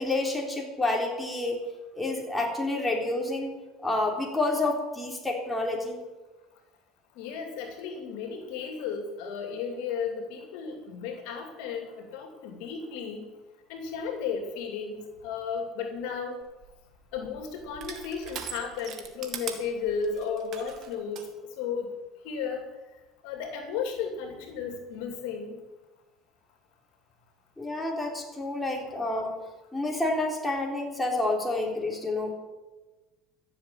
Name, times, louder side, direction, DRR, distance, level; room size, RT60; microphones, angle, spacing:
voice 1, 0.0-1.6 1.9-3.5 3.8-6.0 27.6-29.4 29.7-32.3, left 2 dB, 10° left, 0 dB, 3.7 m, -29 dB
voice 2, 7.1-13.3 13.7-16.4 17.1-21.3 21.6-21.9 22.2-22.7 23.2-25.6, left 6 dB, 75° left, 4 dB, 2.7 m, -34 dB
Crushing, 16.4-21.3, right 8 dB, 50° right, 2.1 m, -42 dB
14.5 x 7.4 x 8.8 m, 1.2 s
supercardioid pair, 100°, 0 cm